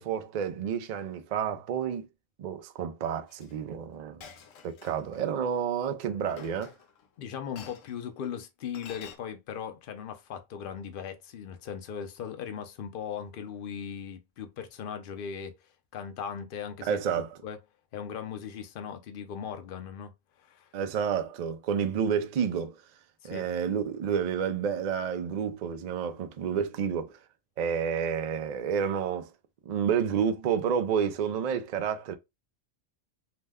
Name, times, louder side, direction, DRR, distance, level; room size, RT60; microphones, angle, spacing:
voice 1, 0.0-2.1 2.4-4.2 4.6-6.7 16.8-17.3 20.7-22.8 23.2-27.1 27.6-29.3 29.7-32.1, right 7 dB, 75° right, 0.4 m, -30 dB
Chink clink, 3.3-3.5 4.2-5.2 6.3-7.1 7.6-7.9 8.7-9.2, left 7 dB, 90° left, 1.0 m, -48 dB
voice 2, 7.2-15.5 15.9-17.0 17.4-17.6 17.9-20.1 20.4-20.7 23.2-23.5, left 7 dB, 55° left, 0.6 m, -38 dB
2.7 x 2.1 x 3.4 m
omnidirectional pair, 1.3 m